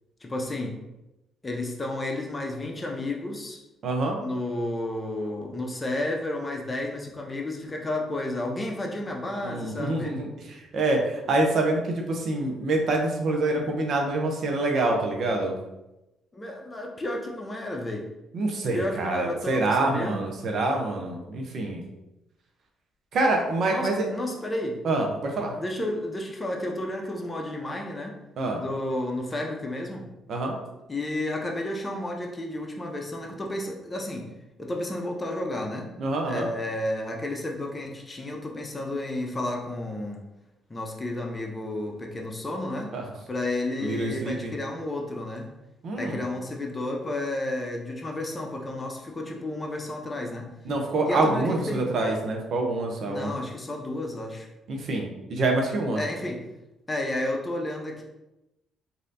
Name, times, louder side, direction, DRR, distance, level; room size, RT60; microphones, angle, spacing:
voice 1, 0.2-0.8 1.4-3.6 4.2-10.2 16.3-18.1 18.7-20.3 23.7-24.8 25.6-28.2 28.6-30.1 30.9-34.3 34.6-35.9 36.3-40.2 40.7-43.0 43.3-45.5 46.0-50.5 51.0-51.8 53.1-54.5 56.0-56.5 56.9-58.0, left 1 dB, 25° left, 1 dB, 0.7 m, -32 dB
voice 2, 3.8-4.2 9.4-10.3 10.7-11.8 12.1-15.5 18.3-21.8 23.1-24.1 24.8-25.5 28.4-28.6 30.3-30.6 36.0-36.5 42.9-43.0 43.8-44.5 45.8-46.2 50.7-53.3 54.7-56.0, right 2 dB, 60° right, 1 dB, 0.7 m, -26 dB
3.2 x 2.7 x 2.7 m, 0.95 s
supercardioid pair, 60°, 0 cm